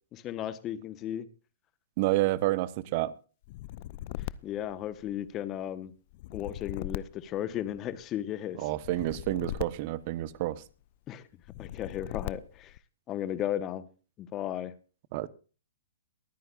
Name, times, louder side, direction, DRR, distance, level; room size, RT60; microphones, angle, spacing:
voice 1, 0.1-1.3 4.1-5.9 6.3-8.7 11.1-11.3 11.6-12.8 13.1-13.9 14.2-14.7, left 11 dB, 25° left, 1.2 m, -35 dB
voice 2, 2.0-3.1 8.6-10.6 15.1-15.3, right 17 dB, 45° right, 1.0 m, -29 dB
sound 1, 3.4-5.4 6.1-8.0 8.8-10.7 11.4-12.8, left 15 dB, 45° left, 0.5 m, -40 dB
23.0 x 9.4 x 2.5 m
hypercardioid pair, 130°, 0 cm